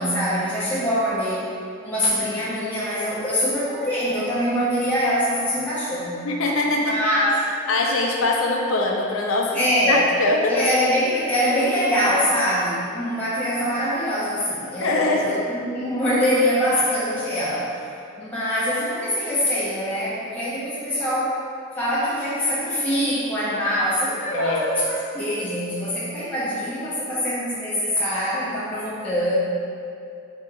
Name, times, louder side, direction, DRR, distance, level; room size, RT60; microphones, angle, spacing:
voice 1, 0.0-1.5 1.8-6.2 6.9-7.4 9.5-10.0 10.4-17.9 18.2-21.4 21.8-29.4, equal, 5° left, -11 dB, 0.6 m, -24 dB
voice 2, 6.2-7.0 7.7-9.6 9.9-10.6 14.8-15.4 24.3-24.6, left 2 dB, 70° left, 0 dB, 0.6 m, -22 dB
4.3 x 2.9 x 3.7 m, 2.5 s
head